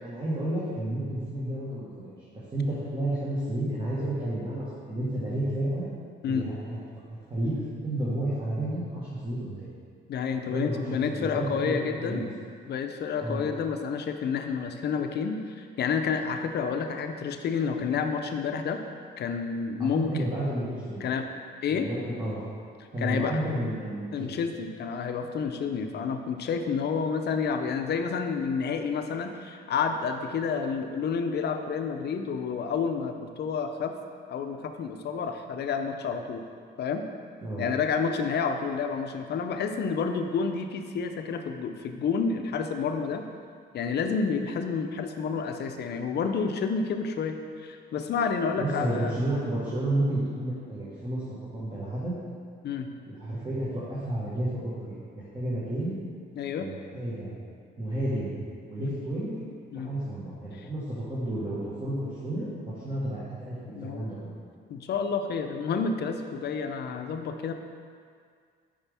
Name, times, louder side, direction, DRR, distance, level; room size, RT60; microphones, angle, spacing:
voice 1, 0.0-2.1 2.5-5.9 6.3-6.8 7.3-9.7 10.5-12.3 13.2-13.4 19.8-21.1 21.7-22.4 22.9-24.3 37.4-37.6 48.6-51.2 51.5-52.2 53.1-56.0 56.6-57.3 57.8-58.4 58.7-59.4 59.8-64.4, right 1 dB, 25° right, -9 dB, 1.4 m, -31 dB
voice 2, 10.1-12.2 12.7-18.8 19.2-20.3 21.0-21.3 21.6-21.9 23.0-23.4 24.1-33.9 34.3-36.4 36.8-37.0 37.6-43.3 43.7-49.1 52.6-52.9 56.4-56.7 58.8-59.0 59.7-59.9 60.5-60.7 63.7-64.1 64.7-67.5, left 5 dB, 55° left, 6 dB, 0.5 m, -29 dB
5.6 x 5.0 x 3.4 m, 2.1 s
cardioid pair, 90°, 20 cm